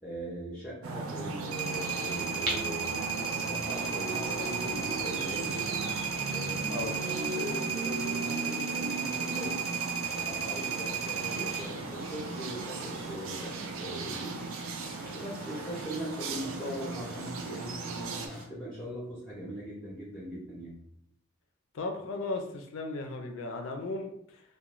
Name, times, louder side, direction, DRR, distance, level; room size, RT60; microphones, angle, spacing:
voice 1, 0.0-3.0 3.3-5.9 6.3-9.6 10.1-14.4 15.1-20.8, equal, ahead, -8 dB, 0.6 m, -40 dB
sound 1, 0.8-18.3, right 3 dB, 60° right, 0.3 m, -37 dB
sound 2, 1.5-11.6, right 7 dB, 85° right, 0.7 m, -34 dB
sound 3, 1.7-18.4, right 1 dB, 40° right, 0.7 m, -45 dB
voice 2, 21.7-24.4, left 2 dB, 60° left, 5 dB, 0.4 m, -36 dB
2.4 x 2.1 x 2.9 m, 0.73 s
head